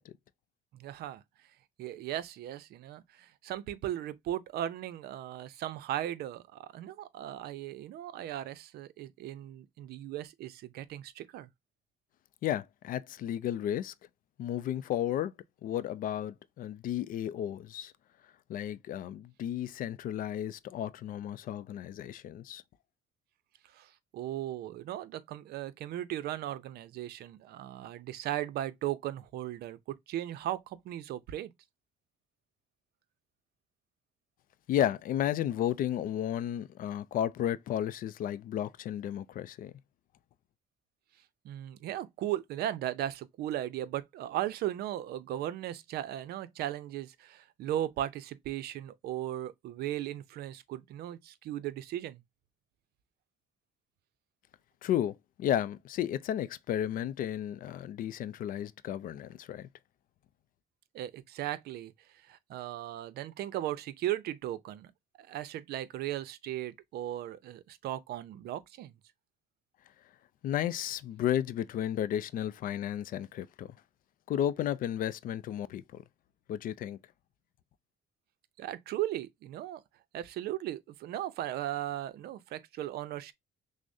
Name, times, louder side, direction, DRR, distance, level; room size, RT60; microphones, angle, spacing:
voice 1, 0.7-1.2 1.8-11.5 23.7-29.8 30.1-31.5 41.4-52.2 60.9-61.9 62.2-64.9 65.2-68.9 78.6-79.8 80.1-83.3, right 13 dB, 70° right, 0.5 m, -37 dB
voice 2, 12.4-13.9 14.4-15.3 15.6-17.9 18.5-22.6 34.7-39.7 54.8-59.7 70.4-73.7 74.3-76.0 76.5-77.0, left 11 dB, 55° left, 0.4 m, -33 dB
6.1 x 2.1 x 2.5 m
cardioid pair, 110°, 17 cm